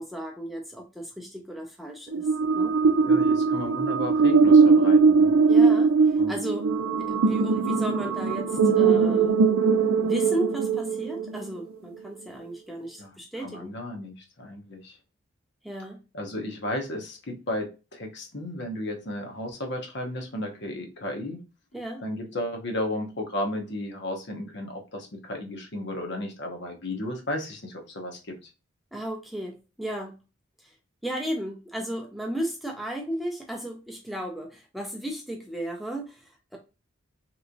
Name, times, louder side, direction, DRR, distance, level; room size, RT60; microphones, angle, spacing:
voice 1, 0.0-2.3 2.5-2.7 5.5-5.9 6.3-6.7 7.1-9.4 10.0-13.8 15.6-16.0 21.7-22.0 28.9-30.2 31.0-36.6, right 1 dB, ahead, 0 dB, 0.4 m, -34 dB
sound 1, 2.1-11.5, right 5 dB, 90° right, 0.5 m, -20 dB
voice 2, 3.1-5.4 6.2-6.4 13.0-15.0 16.1-21.4 22.0-28.5, left 1 dB, 55° left, 3 dB, 0.8 m, -34 dB
3.4 x 3.0 x 2.5 m, 0.30 s
head